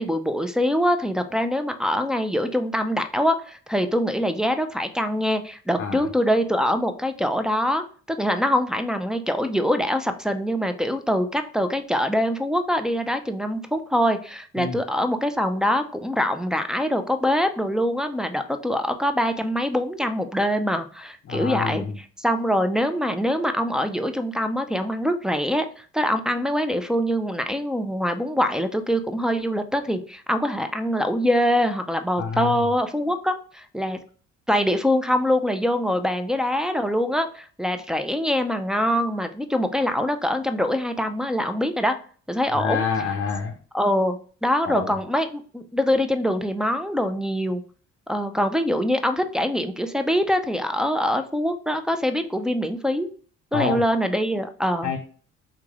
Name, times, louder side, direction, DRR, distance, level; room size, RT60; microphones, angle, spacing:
voice 1, 0.0-21.8 22.2-34.0 34.5-42.0 42.3-42.8 43.7-47.6 48.1-53.1 53.5-54.9, equal, ahead, 6 dB, 0.3 m, -24 dB
voice 2, 5.8-6.1 14.6-14.8 21.3-21.9 32.2-32.6 42.5-43.5 44.7-44.9 53.5-53.8 54.8-55.0, left 6 dB, 45° left, 2 dB, 0.5 m, -27 dB
3.6 x 3.1 x 2.4 m, 0.43 s
cardioid pair, 90°, 30 cm